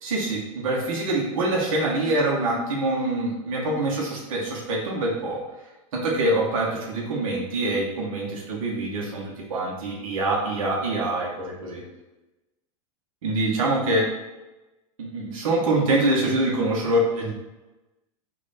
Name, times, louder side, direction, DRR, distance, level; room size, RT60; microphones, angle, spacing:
voice 1, 0.0-5.4 5.9-11.8 13.2-14.1 15.0-17.3, right 2 dB, 75° right, -2 dB, 0.9 m, -25 dB
3.1 x 2.5 x 4.1 m, 1.1 s
hypercardioid pair, 100°, 17 cm